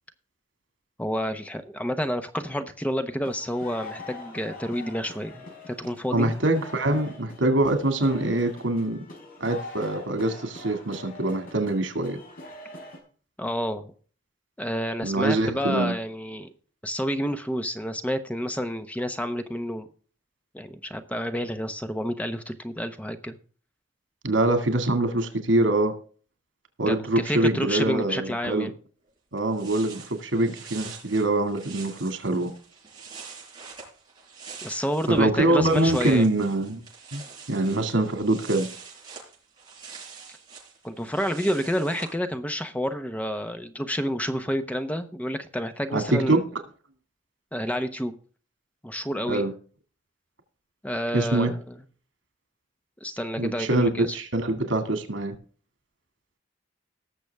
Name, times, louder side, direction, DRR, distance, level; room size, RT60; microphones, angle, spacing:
voice 1, 1.0-6.3 13.4-13.9 14.6-16.5 16.8-19.9 20.5-23.4 26.9-28.7 34.6-36.3 40.8-46.4 47.5-48.1 48.8-49.5 50.8-51.7 53.0-54.2, equal, 10° left, 8 dB, 0.9 m, -29 dB
sound 1, 3.2-13.0, left 1 dB, 50° left, 4.8 m, -43 dB
voice 2, 6.1-9.0 9.4-12.2 15.0-15.9 24.2-26.0 26.8-28.7 29.3-32.5 35.1-36.8 37.1-37.2 37.5-38.7 45.9-46.4 49.3-49.5 51.1-51.5 53.4-55.3, right 2 dB, 90° right, 7 dB, 2.2 m, -24 dB
sound 2, 29.1-29.2 29.4-35.2 35.5-42.1, right 5 dB, 25° right, 7.0 m, -45 dB
18.5 x 7.0 x 3.5 m, 0.41 s
head